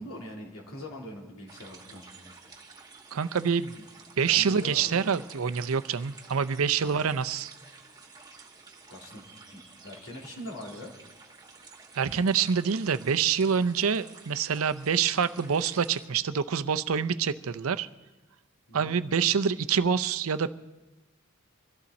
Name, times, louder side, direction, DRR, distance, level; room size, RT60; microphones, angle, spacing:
voice 1, 0.0-2.3 3.8-3.9 4.3-5.1 6.8-7.0 8.9-10.9 18.7-18.9, left 1 dB, 80° left, -2 dB, 3.4 m, -43 dB
sound 1, 1.5-16.1, right 4 dB, 20° right, 1.6 m, -51 dB
voice 2, 3.1-3.7 4.2-7.6 12.0-17.9 18.7-20.5, right 6 dB, 85° right, 12 dB, 0.6 m, -26 dB
24.0 x 14.5 x 4.2 m, 1.1 s
head